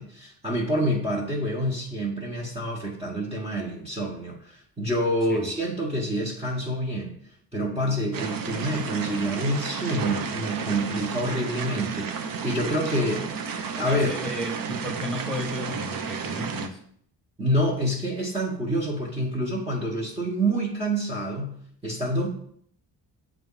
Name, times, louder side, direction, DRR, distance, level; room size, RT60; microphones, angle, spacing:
voice 1, 0.0-7.1 7.5-13.2 13.7-14.1 17.4-21.6 21.8-22.3, equal, 15° right, -4 dB, 1.2 m, -27 dB
sound 1, 8.1-16.7, right 6 dB, 50° right, 0.7 m, -32 dB
voice 2, 13.8-16.8, left 1 dB, ahead, 2 dB, 1.4 m, -33 dB
7.3 x 2.5 x 5.5 m, 0.63 s
cardioid pair, 90°, 43 cm